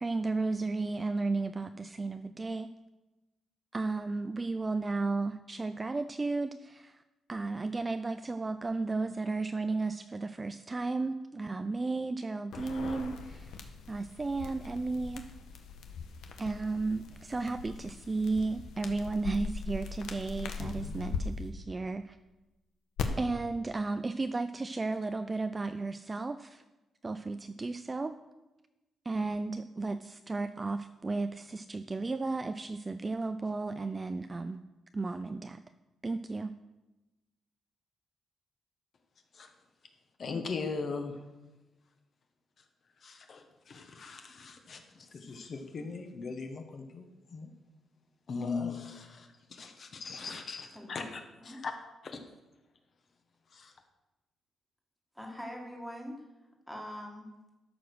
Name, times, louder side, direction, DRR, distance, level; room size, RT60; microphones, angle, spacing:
voice 1, 0.0-2.7 3.7-7.0 7.3-13.6 13.9-15.2 16.4-22.2 23.2-26.6 27.0-28.1 29.1-34.6 34.9-35.6 36.0-36.5, right 3 dB, 20° right, 10 dB, 0.3 m, -34 dB
sound 1, 12.5-21.2 23.0-23.1, left 6 dB, 90° left, 1.1 m, -41 dB
voice 2, 40.2-41.2 43.0-47.5 48.3-51.7 52.0-52.2 53.5-53.7, left 4 dB, 40° left, 5 dB, 1.1 m, -39 dB
voice 3, 55.2-56.2 56.7-57.3, equal, ahead, 0 dB, 1.6 m, -43 dB
13.0 x 5.1 x 6.3 m, 1.0 s
cardioid pair, 165°, 0 cm